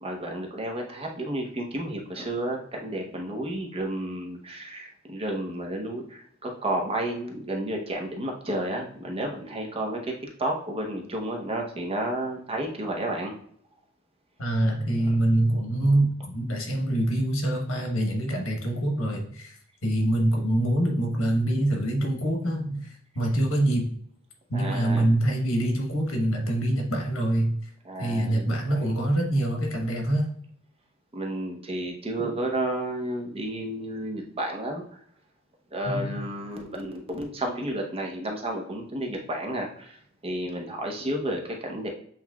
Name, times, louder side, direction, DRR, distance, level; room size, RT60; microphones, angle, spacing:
voice 1, 0.0-10.1 10.4-13.3 24.5-25.2 27.8-28.5 28.7-29.0 31.1-34.8 35.7-40.0 40.2-41.9, right 1 dB, 30° right, 1 dB, 0.8 m, -31 dB
voice 2, 14.4-19.6 19.8-23.9 24.5-27.5 28.0-30.3 35.8-36.2, right 1 dB, 80° left, 1 dB, 1.3 m, -25 dB
7.7 x 2.9 x 2.3 m, 0.62 s
head